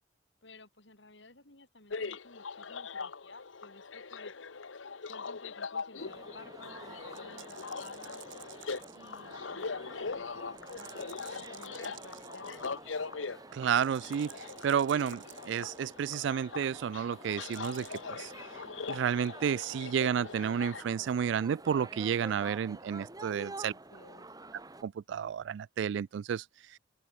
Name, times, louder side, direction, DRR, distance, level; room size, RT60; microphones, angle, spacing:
voice 1, 0.4-4.3 5.0-8.2 8.9-12.8 23.7-24.3, left 2 dB, 65° left, 5.3 m, -54 dB
sound 1, 1.9-20.8, left 4 dB, 80° left, 1.0 m, -41 dB
sound 2, 6.0-24.8, right 2 dB, 20° right, 2.1 m, -50 dB
sound 3, 7.1-9.3 10.6-12.8 13.7-15.9 17.3-18.0, right 9 dB, 80° right, 2.5 m, -52 dB
voice 2, 13.5-14.3 14.6-18.3 18.9-23.7 24.8-26.4, right 8 dB, 65° right, 0.3 m, -31 dB
open air
head